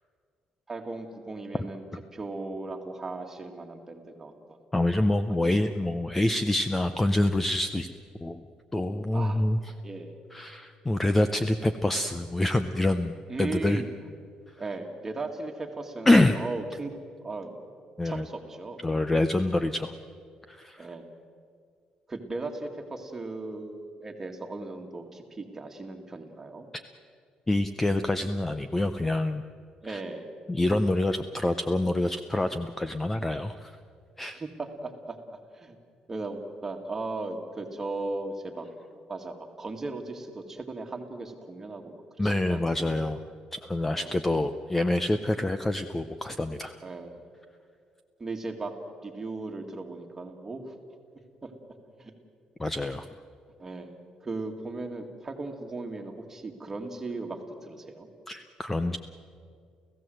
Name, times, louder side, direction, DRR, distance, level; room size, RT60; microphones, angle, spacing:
voice 1, 0.7-1.8 2.1-4.6 9.1-9.5 9.8-10.2 13.3-13.9 14.6-16.9 17.2-17.5 18.0-18.8 20.8-21.1 22.1-26.7 29.8-30.3 34.3-35.2 35.5-35.8 36.1-38.7 39.1-42.9 43.9-44.2 46.8-47.2 48.2-48.7 49.0-50.7 51.4-51.5 52.0-52.1 53.6-58.1 58.9-59.0, right 3 dB, 15° right, 4 dB, 2.0 m, -37 dB
voice 2, 4.7-7.9 8.2-8.4 8.7-9.7 10.3-13.8 16.1-16.4 18.0-18.2 18.8-19.9 20.5-20.9 27.5-29.4 29.9-30.0 30.5-33.7 34.2-34.4 42.2-43.2 43.5-46.8 52.6-53.1 58.3-59.0, left 1 dB, 10° left, 10 dB, 0.5 m, -26 dB
30.0 x 15.5 x 7.8 m, 2.2 s
cardioid pair, 175°, 2 cm